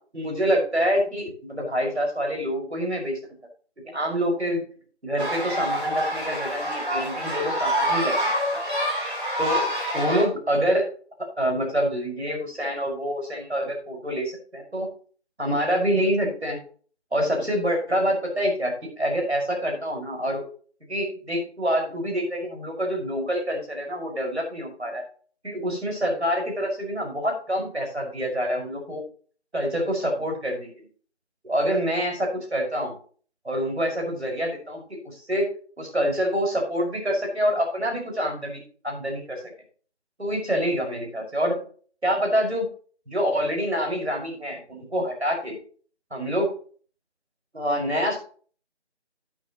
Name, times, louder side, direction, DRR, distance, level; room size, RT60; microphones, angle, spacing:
voice 1, 0.1-3.2 3.9-4.6 5.0-8.6 9.4-9.7 9.9-10.9 11.4-14.9 15.4-16.6 17.1-20.4 20.9-25.0 25.4-29.0 29.5-30.9 31.4-32.9 33.4-35.5 35.8-39.4 40.2-41.6 42.0-42.7 43.1-45.6 46.1-46.5 47.5-48.2, equal, 70° right, 0 dB, 5.7 m, -26 dB
sound 1, 5.2-10.2, equal, 45° right, 5.3 m, -26 dB
13.0 x 9.2 x 3.0 m, 0.42 s
figure-of-eight pair, 175°, 34 cm